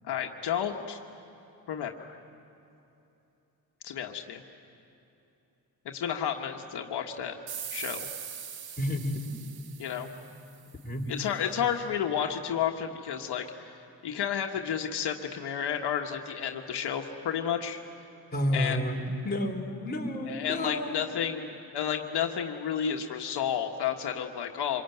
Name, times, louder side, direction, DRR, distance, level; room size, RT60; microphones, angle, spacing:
voice 1, 0.1-1.0 1.7-2.2 3.8-4.4 5.8-7.4 7.7-8.1 9.8-10.1 11.1-13.7 14.0-17.8 18.5-18.8 20.3-24.8, left 8 dB, 85° left, 3 dB, 1.5 m, -31 dB
sound 1, 7.5-10.8, right 8 dB, 70° right, 1.4 m, -41 dB
voice 2, 8.8-9.2 10.8-11.1 18.3-21.0, left 1 dB, 25° left, 0 dB, 3.4 m, -30 dB
26.5 x 23.0 x 9.3 m, 2.9 s
cardioid pair, 120°, 39 cm